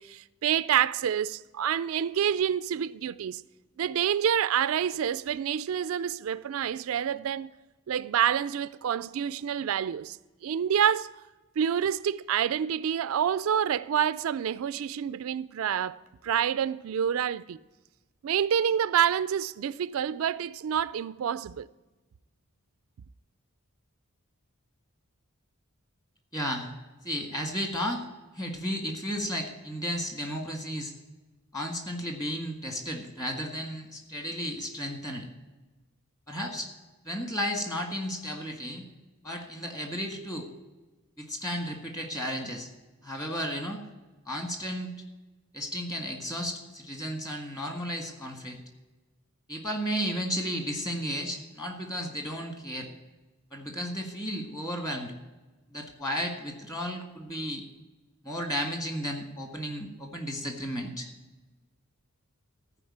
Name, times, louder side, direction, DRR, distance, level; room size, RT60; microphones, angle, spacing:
voice 1, 0.0-3.4 3.8-7.5 7.9-10.2 10.4-11.1 11.6-17.6 18.2-21.7, right 9 dB, 75° right, 0.3 m, -27 dB
voice 2, 26.3-26.7 27.0-28.1 28.3-30.9 31.5-35.3 36.3-36.7 37.0-38.9 39.2-40.5 41.2-42.7 43.0-43.8 44.3-44.9 45.5-48.6 49.5-52.9 53.5-55.1 55.7-57.6 58.2-61.1, equal, 15° left, 1.7 m, -33 dB
14.5 x 5.0 x 8.6 m
head